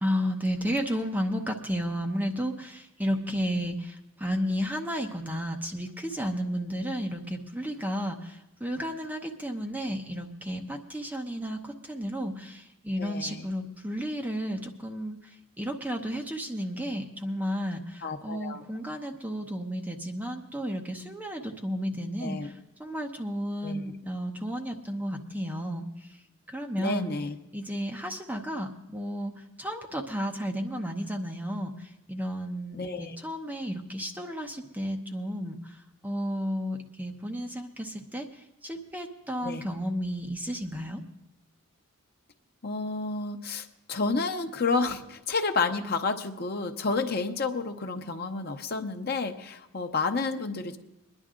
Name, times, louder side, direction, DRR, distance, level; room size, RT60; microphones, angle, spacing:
voice 1, 0.0-15.2 15.6-26.1 26.5-27.1 27.5-35.8 36.0-38.3 38.6-41.0, equal, 10° right, 2 dB, 0.8 m, -33 dB
voice 2, 13.0-13.5 18.0-18.6 22.2-22.5 23.6-23.8 26.8-27.4 32.7-33.2 39.4-39.6 42.6-50.8, left 3 dB, 45° left, 5 dB, 0.8 m, -30 dB
21.0 x 10.5 x 3.7 m, 0.91 s
head